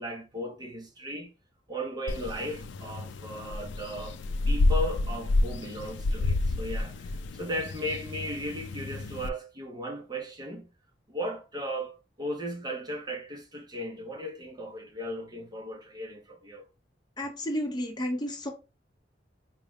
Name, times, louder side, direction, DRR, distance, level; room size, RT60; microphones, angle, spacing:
voice 1, 0.0-1.3 1.7-4.2 4.5-10.7 11.1-16.7, equal, 25° right, 0.6 m, -36 dB
sound 1, 2.1-9.3, left 2 dB, 80° left, 0.4 m, -30 dB
voice 2, 17.2-18.5, equal, 25° left, 0.7 m, -31 dB
4.6 x 2.1 x 3.5 m
head